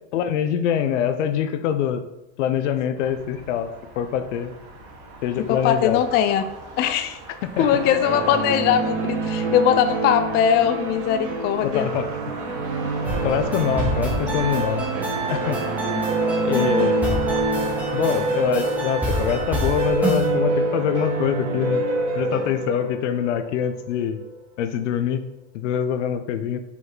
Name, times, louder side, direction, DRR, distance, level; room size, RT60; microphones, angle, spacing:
voice 1, 0.1-2.0 2.4-4.5 5.2-6.0 7.6-7.7 11.6-12.4 13.2-14.9 15.3-15.6 16.4-17.0 17.9-21.8 22.1-24.2 24.6-25.2 25.5-26.6, left 9 dB, 85° left, 10 dB, 0.8 m, -24 dB
sound 1, 2.9-19.7, right 2 dB, 50° right, 2.0 m, -40 dB
voice 2, 5.4-6.4 6.8-7.2 7.6-11.9 13.0-13.1 16.5-16.9, left 9 dB, 30° left, 9 dB, 0.4 m, -21 dB
sound 2, 7.6-24.3, right 2 dB, 85° right, 1.5 m, -26 dB
sound 3, 13.0-20.3, right 2 dB, 5° right, 1.7 m, -27 dB
5.7 x 4.6 x 4.0 m, 0.91 s
supercardioid pair, 140°, 35 cm